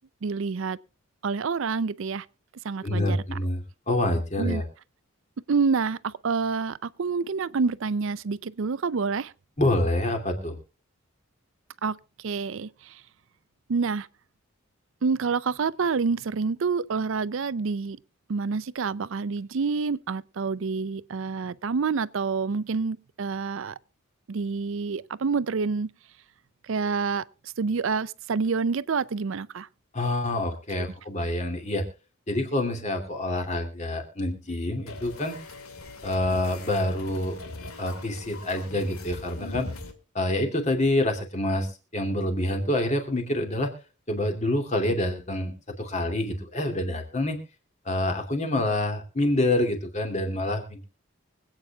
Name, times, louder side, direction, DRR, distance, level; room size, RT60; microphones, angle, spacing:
voice 1, 0.2-0.8 1.2-2.3 2.6-3.4 4.4-4.6 5.5-9.3 11.8-12.0 12.2-13.0 13.7-14.1 15.0-18.0 18.3-23.7 24.3-25.9 26.7-27.2 27.6-29.7, right 5 dB, 65° right, 0.5 m, -27 dB
voice 2, 2.8-4.6 9.6-10.6 29.9-31.8 32.3-35.4 36.0-37.4 37.8-39.7 40.1-43.7 44.1-47.4 47.8-50.8, left 1 dB, 35° left, 2.5 m, -27 dB
sound 1, 34.9-39.9, left 2 dB, 90° left, 2.3 m, -41 dB
24.5 x 8.9 x 2.3 m
head